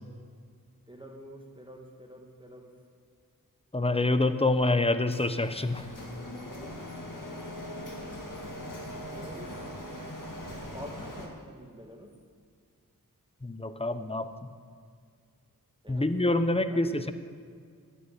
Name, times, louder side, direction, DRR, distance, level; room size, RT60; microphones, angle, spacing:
voice 1, 0.9-2.7 9.1-9.5 10.7-12.1 15.8-16.1 16.6-16.9, equal, 15° right, 1 dB, 2.2 m, -47 dB
voice 2, 3.7-5.8 13.4-14.3 15.9-17.1, left 2 dB, 15° left, 10 dB, 0.8 m, -26 dB
Printer, 5.1-11.3, left 1 dB, 65° left, 2.0 m, -41 dB
11.5 x 6.9 x 9.0 m, 2.1 s
wide cardioid pair, 45°, 35 cm